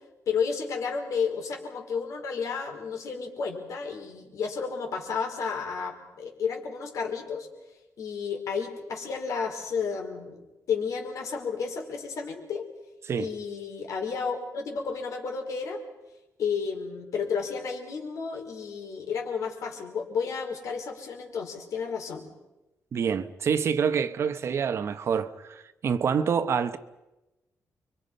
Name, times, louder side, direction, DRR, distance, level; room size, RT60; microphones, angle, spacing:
voice 1, 0.3-7.5 8.0-10.4 10.7-12.7 13.2-15.8 16.4-22.2, left 5 dB, 65° left, 5.0 m, -32 dB
voice 2, 22.9-26.8, right 7 dB, 50° right, 1.1 m, -27 dB
30.0 x 24.0 x 5.6 m
wide cardioid pair, 175°, 6 cm